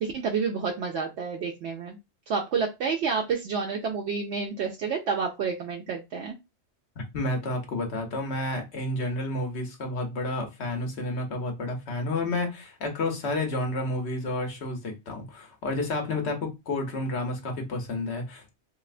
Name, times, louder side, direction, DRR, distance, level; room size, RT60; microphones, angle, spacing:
voice 1, 0.0-2.0 2.3-6.4, right 5 dB, 75° right, 0.9 m, -29 dB
voice 2, 7.1-18.5, left 2 dB, 70° left, 1.1 m, -30 dB
3.1 x 2.7 x 2.4 m
omnidirectional pair, 1.2 m